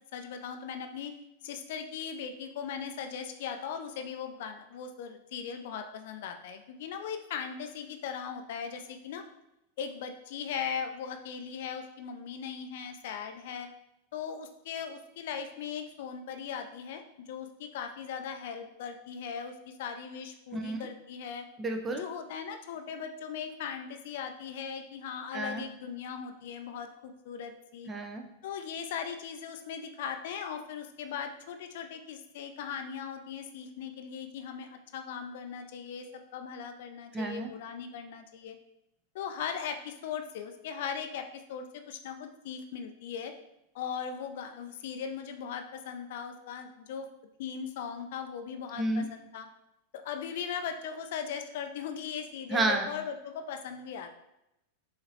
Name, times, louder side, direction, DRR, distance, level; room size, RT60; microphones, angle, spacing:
voice 1, 0.1-1.1 1.4-9.2 9.8-13.7 14.1-21.5 22.0-27.9 28.4-38.6 39.1-43.3 43.7-47.1 47.4-49.5 49.9-54.1, left 7 dB, 55° left, 6 dB, 0.4 m, -39 dB
voice 2, 21.6-22.0 25.3-25.6 27.9-28.2 37.1-37.5 48.8-49.1 52.5-52.9, right 2 dB, 20° right, 4 dB, 0.6 m, -30 dB
6.4 x 2.8 x 2.8 m, 0.87 s
figure-of-eight pair, 90°, 0 cm